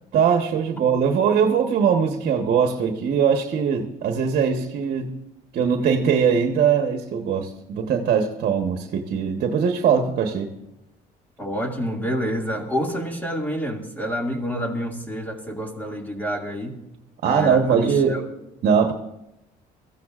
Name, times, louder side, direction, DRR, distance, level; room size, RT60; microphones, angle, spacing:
voice 1, 0.1-5.2 5.5-10.5 17.2-18.2 18.6-18.9, right 7 dB, 60° right, 5 dB, 1.2 m, -21 dB
voice 2, 11.4-16.8 17.3-18.3, equal, 10° left, 2 dB, 2.2 m, -28 dB
22.5 x 15.0 x 2.5 m, 0.89 s
cardioid pair, 110°, 17 cm